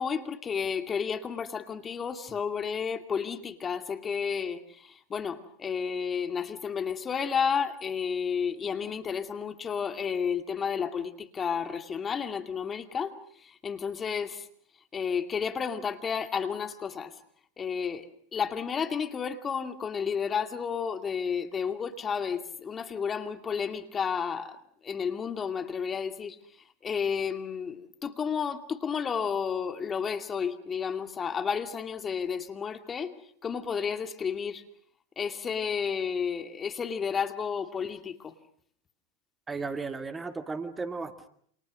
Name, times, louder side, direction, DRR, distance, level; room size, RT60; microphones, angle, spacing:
voice 1, 0.0-13.1 13.4-14.5 14.9-17.1 17.6-18.1 18.3-24.6 24.8-26.4 26.8-33.1 33.4-34.6 35.2-38.3, left 6 dB, 25° left, 2.4 m, -31 dB
voice 2, 39.5-41.3, right 4 dB, 15° right, 1.9 m, -35 dB
29.0 x 27.5 x 6.4 m
hypercardioid pair, 100°, 0 cm